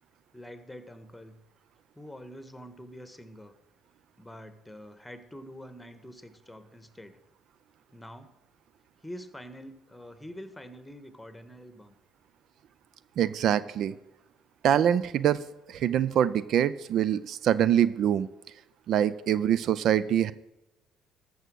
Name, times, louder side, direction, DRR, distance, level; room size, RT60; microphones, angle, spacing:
voice 1, 0.3-1.4 1.9-3.5 4.2-7.2 7.9-8.3 9.0-12.0, equal, 10° left, 10 dB, 1.4 m, -46 dB
voice 2, 13.2-13.9 14.6-15.4 15.7-18.3 18.9-20.3, right 10 dB, 60° right, 17 dB, 0.4 m, -24 dB
14.0 x 6.3 x 6.3 m, 0.93 s
hypercardioid pair, 60°, 0 cm